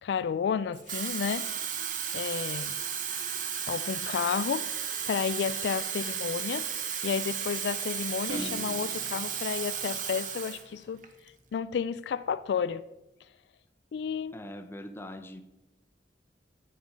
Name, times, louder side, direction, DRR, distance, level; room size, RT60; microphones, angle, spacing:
voice 1, 0.0-1.5 2.1-2.7 3.7-4.7 5.1-6.7 7.0-11.0 11.5-12.8 13.9-14.4, left 7 dB, 70° left, 15 dB, 0.3 m, -31 dB
Water tap faucet / Fill (with liquid), 0.7-10.7 11.0-11.3, right 8 dB, 45° right, 0.9 m, -34 dB
sound 1, 8.3-10.8, equal, 80° right, 1.6 m, -41 dB
voice 2, 14.3-15.4, left 1 dB, 15° left, 7 dB, 0.6 m, -42 dB
7.9 x 6.8 x 5.1 m, 0.94 s
head